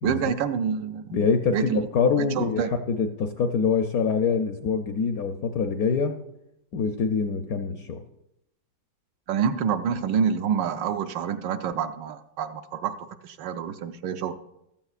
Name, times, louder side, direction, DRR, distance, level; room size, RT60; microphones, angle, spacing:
voice 1, 0.0-1.1 1.5-1.9 2.2-2.7 9.3-14.3, right 7 dB, 75° right, 9 dB, 1.2 m, -27 dB
voice 2, 1.1-2.6 2.9-6.2 6.7-8.0, left 5 dB, 70° left, 6 dB, 0.9 m, -25 dB
14.5 x 13.0 x 2.4 m, 0.84 s
omnidirectional pair, 2.1 m